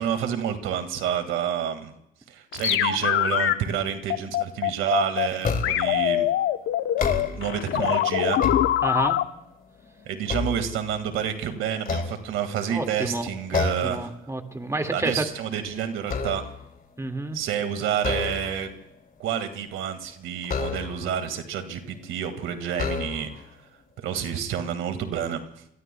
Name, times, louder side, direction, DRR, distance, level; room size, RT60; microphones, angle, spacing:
voice 1, 0.0-1.9 2.3-6.3 7.4-8.4 10.1-14.1 14.9-16.4 17.3-18.7 19.2-23.4 24.0-25.4, right 9 dB, 90° right, 8 dB, 2.0 m, -29 dB
sound 1, 2.5-3.5 4.1-5.3 5.6-9.2, left 12 dB, 85° left, 0.9 m, -23 dB
sound 2, 5.4-6.0 6.8-7.6 8.1-9.2 9.7-11.2 11.8-12.8 13.5-14.0 14.4-14.7 15.0-16.7 17.9-18.8 20.4-21.2 22.0-22.1 22.7-23.5, left 5 dB, 45° left, 2.9 m, -30 dB
voice 2, 8.8-9.2 12.7-15.2 17.0-17.4, right 2 dB, 15° right, 5 dB, 2.1 m, -30 dB
28.5 x 22.0 x 2.3 m, 0.79 s
cardioid pair, 90°, 20 cm